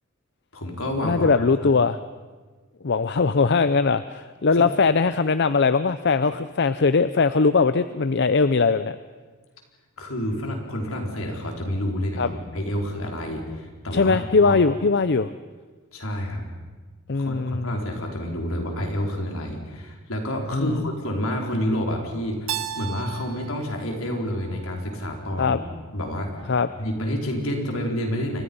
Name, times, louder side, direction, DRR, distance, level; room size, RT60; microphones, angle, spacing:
voice 1, 0.5-1.3 1.6-1.7 3.1-3.2 4.5-4.7 10.0-14.6 15.9-16.4 17.1-25.6 25.9-26.5 26.8-28.4, equal, 75° left, 1 dB, 4.7 m, -29 dB
voice 2, 1.0-2.0 2.8-9.0 12.2-12.3 13.9-15.3 17.1-17.8 20.5-20.7 25.4-25.6 26.5-26.7, left 4 dB, 55° left, 13 dB, 0.6 m, -20 dB
Keyboard (musical), 22.5-25.3, right 9 dB, 75° right, 1.2 m, -35 dB
29.5 x 24.5 x 5.5 m, 1.4 s
head